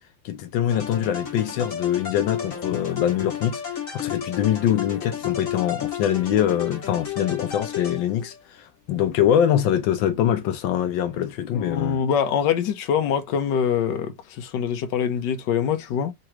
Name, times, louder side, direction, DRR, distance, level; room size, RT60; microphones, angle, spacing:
voice 1, 0.2-12.0, left 10 dB, 85° left, 1.5 m, -24 dB
sound 1, 0.7-8.4, left 9 dB, 45° left, 2.0 m, -32 dB
voice 2, 11.5-16.1, left 8 dB, 70° left, 1.4 m, -24 dB
3.8 x 3.0 x 4.5 m
omnidirectional pair, 2.0 m